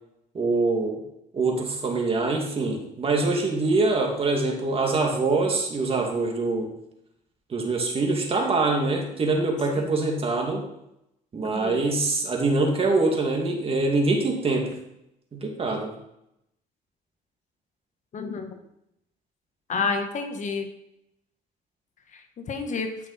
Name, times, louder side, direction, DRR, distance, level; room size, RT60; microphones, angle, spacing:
voice 1, 0.3-1.0 1.3-6.7 7.5-10.6 11.3-14.7 15.3-15.9, right 3 dB, 35° right, 1 dB, 2.3 m, -24 dB
voice 2, 11.4-11.8 18.1-18.6 19.7-20.7 22.5-22.9, left 4 dB, 45° left, 6 dB, 1.3 m, -29 dB
12.5 x 6.0 x 4.2 m, 0.82 s
cardioid pair, 110°, 17 cm